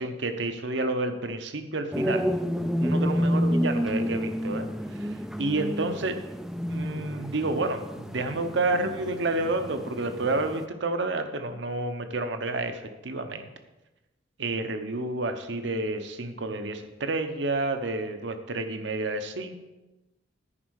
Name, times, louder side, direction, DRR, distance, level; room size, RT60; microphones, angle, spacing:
voice 1, 0.0-2.3 2.8-4.7 5.0-5.1 5.4-6.2 6.7-13.5 14.4-19.6, right 2 dB, 75° right, 7 dB, 0.8 m, -30 dB
sound 1, 1.9-10.7, equal, ahead, 0.3 m, -30 dB
9.9 x 5.3 x 6.3 m, 1.0 s
head